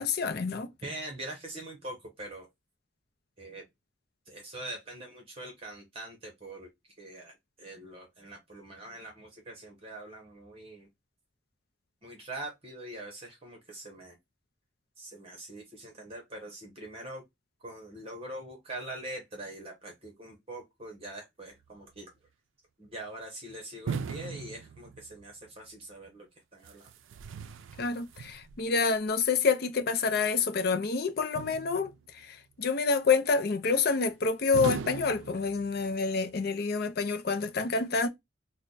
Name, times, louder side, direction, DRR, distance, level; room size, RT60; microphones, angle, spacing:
voice 1, 0.0-0.7 27.8-31.9 32.2-38.1, left 4 dB, 55° left, 0.5 m, -28 dB
voice 2, 0.8-2.5 3.4-3.6 4.3-6.7 7.0-10.9 12.0-14.1 15.0-17.2 17.6-22.1 22.8-26.3 26.5-26.9, right 1 dB, 30° right, 0.9 m, -43 dB
sound 1, 23.9-25.3 26.6-28.7 31.3-32.2 34.5-36.0, right 6 dB, 85° right, 0.4 m, -38 dB
3.3 x 2.1 x 3.9 m
head